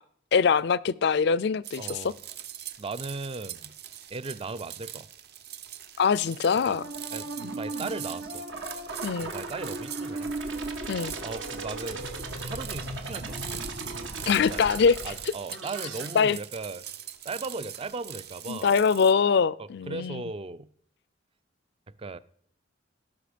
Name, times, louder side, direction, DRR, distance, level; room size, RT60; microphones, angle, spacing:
voice 1, 0.3-2.0 6.0-6.8 9.0-9.3 10.9-11.1 14.3-15.0 16.2-16.4 18.5-20.2, left 6 dB, 60° left, 21 dB, 0.4 m, -23 dB
sound 1, 1.6-19.1, right 11 dB, 55° right, 0.7 m, -42 dB
voice 2, 1.8-2.1 2.8-3.7 4.1-5.1 6.7-6.8 7.1-8.4 9.2-10.4 11.2-12.1 12.4-13.6 14.2-14.7 15.0-16.9 17.2-18.8 19.6-20.7 22.0-22.2, right 3 dB, 30° right, 16 dB, 0.4 m, -37 dB
sound 2, 6.7-16.1, right 2 dB, 75° right, 1.6 m, -36 dB
17.5 x 6.1 x 5.1 m, 0.63 s
head